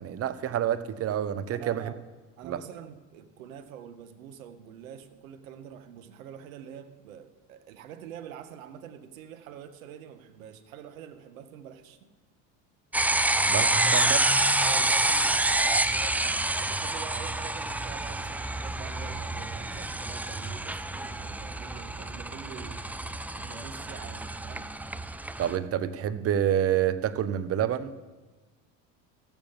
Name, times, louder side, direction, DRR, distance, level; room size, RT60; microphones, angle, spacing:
voice 1, 0.0-1.9 2.4-2.6 13.5-14.2 25.4-27.9, right 10 dB, 35° right, 13 dB, 0.8 m, -28 dB
voice 2, 1.5-2.0 2.4-12.1 13.7-14.0 14.6-22.9 23.3-24.7, right 9 dB, 85° right, 9 dB, 1.1 m, -46 dB
sound 1, 12.9-25.6, right 2 dB, 5° right, 0.4 m, -28 dB
14.0 x 7.1 x 7.4 m, 1.2 s
supercardioid pair, 85°, 40 cm